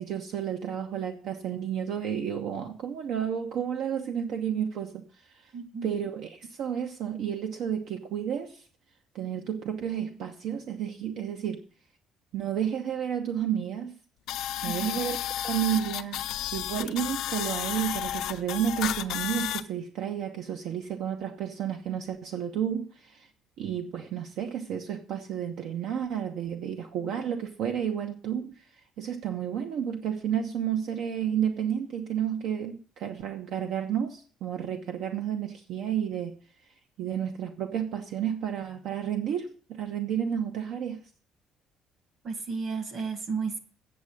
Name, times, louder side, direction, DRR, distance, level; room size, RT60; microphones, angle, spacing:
voice 1, 0.0-5.0 5.4-5.5 5.8-8.6 9.1-11.6 12.3-13.9 14.6-15.2 15.4-16.2 16.5-23.3 23.6-28.5 29.0-36.4 37.0-41.0, right 9 dB, 65° right, 5 dB, 1.0 m, -31 dB
voice 2, 5.5-5.9 14.7-15.0 42.2-43.6, right 5 dB, 40° right, 9 dB, 1.6 m, -33 dB
sound 1, 14.3-19.6, left 12 dB, 70° left, 0.7 m, -32 dB
8.3 x 7.4 x 8.3 m, 0.43 s
cardioid pair, 170°, 0 cm